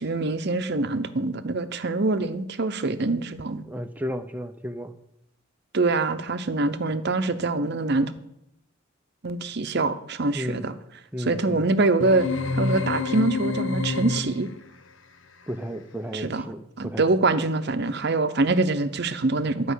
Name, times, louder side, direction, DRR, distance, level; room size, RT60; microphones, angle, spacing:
voice 1, 0.0-3.7 5.7-8.1 9.2-10.7 11.2-12.3 12.6-14.5 16.1-16.4 16.8-19.7, right 2 dB, 55° right, 11 dB, 0.7 m, -24 dB
voice 2, 3.7-4.9 10.3-10.7 11.1-11.7 15.5-17.2, equal, 10° right, 7 dB, 0.6 m, -33 dB
sound 1, 12.0-14.6, left 3 dB, 70° left, 1.0 m, -28 dB
11.5 x 5.5 x 8.2 m, 0.79 s
head